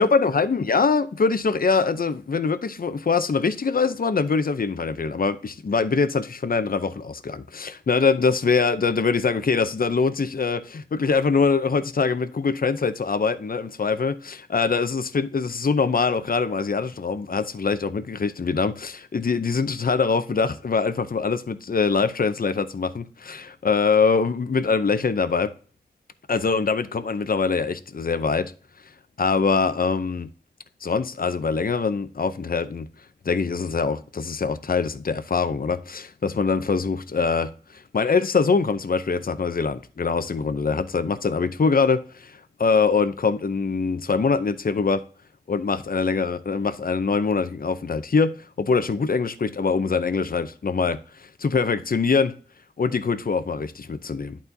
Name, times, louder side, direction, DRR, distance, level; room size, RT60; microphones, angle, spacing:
voice 1, 0.0-25.5 26.3-28.5 29.2-30.3 30.8-32.9 33.2-45.0 45.5-52.4 52.8-54.4, left 4 dB, 55° left, 0.6 m, -23 dB
11.0 x 4.2 x 2.7 m
wide cardioid pair, 70°, 18 cm